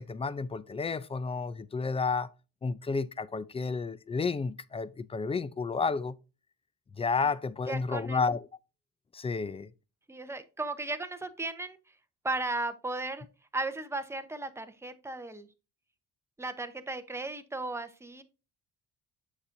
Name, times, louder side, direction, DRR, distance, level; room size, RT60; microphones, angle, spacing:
voice 1, 0.0-2.3 2.6-6.2 7.0-8.4 9.1-9.7, left 4 dB, 20° left, 0.3 m, -31 dB
voice 2, 7.7-8.2 10.1-11.8 12.2-13.3 13.5-15.5 16.4-18.2, right 2 dB, 10° right, 0.7 m, -35 dB
7.1 x 6.6 x 2.6 m
cardioid pair, 110°, 35 cm